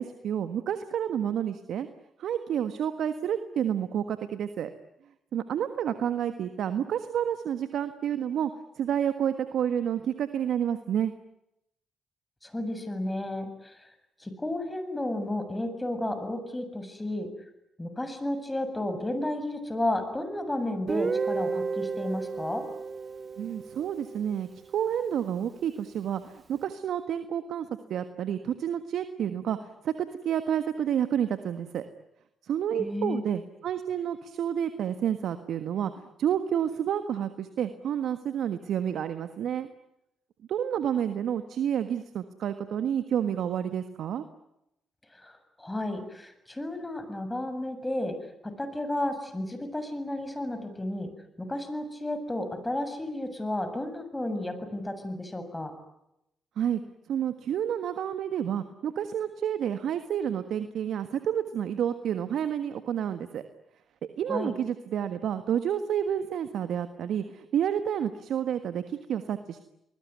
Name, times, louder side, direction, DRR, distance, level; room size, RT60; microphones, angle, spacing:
voice 1, 0.0-1.9 2.2-4.7 5.3-8.5 8.8-11.1 23.4-31.8 32.4-39.7 40.5-44.2 56.6-56.8 57.1-63.4 64.2-69.6, right 9 dB, 70° right, 10 dB, 1.5 m, -29 dB
voice 2, 12.4-13.9 14.2-17.3 17.8-22.6 32.8-33.2 45.1-48.1 48.4-51.1 51.4-55.7 64.3-64.5, left 1 dB, 15° left, 9 dB, 7.4 m, -32 dB
Guitar, 20.9-24.7, right 4 dB, 45° right, 1.2 m, -32 dB
29.0 x 20.5 x 9.6 m, 0.83 s
supercardioid pair, 50°, 0 cm